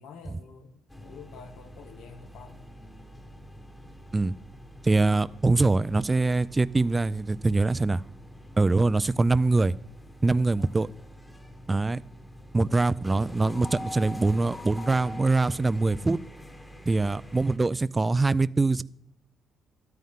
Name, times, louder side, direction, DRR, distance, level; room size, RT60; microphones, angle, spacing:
voice 1, 0.0-2.6 10.6-10.9, left 6 dB, 85° left, 1.4 m, -48 dB
sound 1, 0.9-17.6, left 1 dB, 15° left, 1.4 m, -45 dB
voice 2, 4.8-8.0 8.6-9.7 10.2-10.9 11.7-12.0 12.5-16.2 16.9-18.8, right 3 dB, 20° right, 0.3 m, -23 dB
12.5 x 9.3 x 3.6 m
cardioid pair, 90°, 0 cm